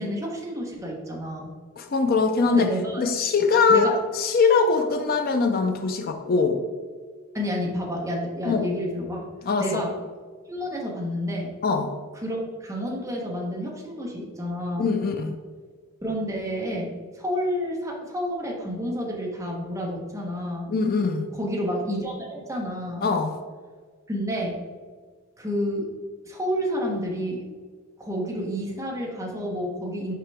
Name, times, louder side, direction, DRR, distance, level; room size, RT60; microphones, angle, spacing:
voice 1, 0.0-1.5 2.5-3.0 3.7-3.9 7.3-9.3 9.6-9.9 10.5-11.5 12.1-14.9 16.0-20.7 21.3-23.1 24.1-24.6 25.4-25.9 26.3-27.4 28.0-30.1, equal, 15° right, -2 dB, 1.1 m, -29 dB
voice 2, 1.8-2.7 3.0-6.6 8.5-8.7 9.4-9.8 11.6-11.9 14.8-15.4 20.7-21.3 23.0-23.4, left 4 dB, 45° left, 6 dB, 0.4 m, -22 dB
5.8 x 4.9 x 3.4 m, 1.6 s
head